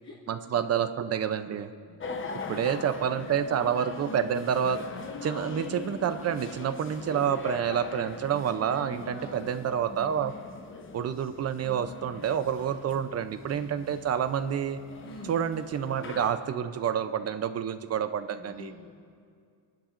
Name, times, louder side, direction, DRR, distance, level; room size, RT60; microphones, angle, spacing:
voice 1, 0.3-1.7 2.5-4.8 5.2-10.3 10.9-14.8 15.3-18.7, right 8 dB, 40° right, 10 dB, 0.5 m, -28 dB
voice 2, 1.9-3.5 9.1-9.5 15.0-15.4 18.4-18.9, left 2 dB, 50° left, -10 dB, 2.5 m, -47 dB
sound 1, 2.0-16.3, left 4 dB, 30° left, 0.8 m, -41 dB
26.0 x 11.5 x 2.5 m, 2.2 s
cardioid pair, 150°, 38 cm